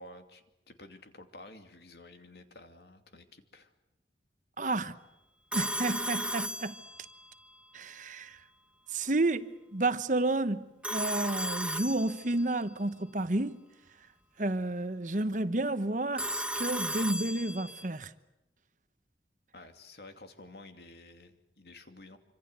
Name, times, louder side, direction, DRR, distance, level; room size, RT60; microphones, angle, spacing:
voice 1, 0.0-3.7 19.5-22.2, left 2 dB, 65° left, 2.7 m, -51 dB
voice 2, 4.6-5.0 5.5-6.8 7.7-8.4 8.9-13.6 14.4-18.1, right 2 dB, 45° right, 1.1 m, -31 dB
Telephone, 5.5-7.3 10.8-12.5 16.2-17.9, equal, 5° right, 1.5 m, -35 dB
26.5 x 25.5 x 8.0 m
head